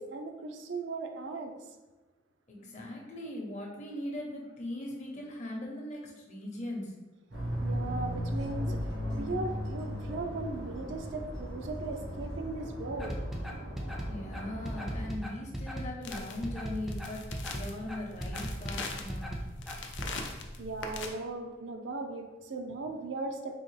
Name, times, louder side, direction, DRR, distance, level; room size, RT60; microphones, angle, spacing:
voice 1, 0.0-1.5 7.6-8.8 9.1-13.1 20.6-23.6, right 3 dB, 70° right, 5 dB, 0.4 m, -38 dB
voice 2, 2.5-6.9 14.1-19.4, left 1 dB, 40° left, 0 dB, 0.8 m, -40 dB
sound 1, 7.3-15.1, equal, 85° right, 1.4 m, -36 dB
sound 2, 13.0-20.1, equal, ahead, 0.4 m, -37 dB
sound 3, 16.0-21.1, left 3 dB, 70° left, 0.5 m, -42 dB
3.8 x 2.9 x 3.2 m, 1.2 s
head